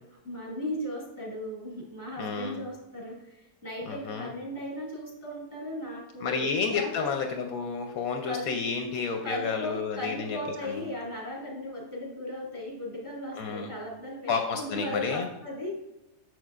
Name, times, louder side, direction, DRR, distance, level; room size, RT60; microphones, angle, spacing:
voice 1, 0.1-7.1 8.2-8.5 9.2-15.7, left 1 dB, 10° right, -5 dB, 1.7 m, -37 dB
voice 2, 2.2-2.6 3.8-4.3 6.2-10.8 13.4-13.7 14.3-15.3, left 5 dB, 70° left, 4 dB, 0.9 m, -31 dB
6.4 x 6.3 x 2.4 m, 0.92 s
omnidirectional pair, 1.7 m